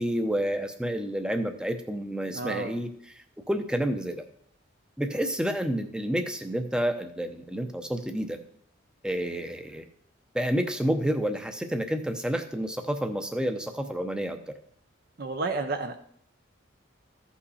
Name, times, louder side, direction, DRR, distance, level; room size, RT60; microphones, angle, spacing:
voice 1, 0.0-2.9 3.5-4.3 5.0-8.4 9.0-9.8 10.3-14.5, equal, 5° right, 7 dB, 0.7 m, -29 dB
voice 2, 2.3-2.8 15.2-16.0, right 3 dB, 50° right, 6 dB, 0.6 m, -31 dB
14.5 x 5.6 x 4.2 m, 0.65 s
head